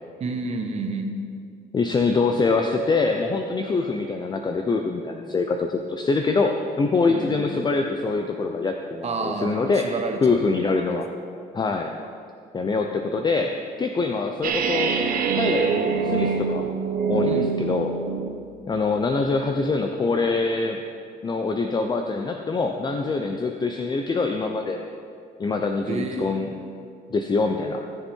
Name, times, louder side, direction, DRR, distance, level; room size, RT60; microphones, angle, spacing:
voice 1, 0.2-1.1 7.1-7.4 9.0-10.6 17.2-17.5 25.9-26.4, right 3 dB, 40° right, 3 dB, 1.5 m, -30 dB
voice 2, 1.7-9.9 10.2-11.1 11.5-11.9 12.5-14.9 15.3-16.7 17.1-17.9 18.7-20.8 21.2-24.9 25.4-26.5 27.1-27.8, left 3 dB, 25° left, 4 dB, 0.6 m, -24 dB
sound 1, 14.4-18.4, right 5 dB, 55° right, 1.1 m, -24 dB
16.5 x 7.0 x 4.6 m, 2.4 s
cardioid pair, 110°, 17 cm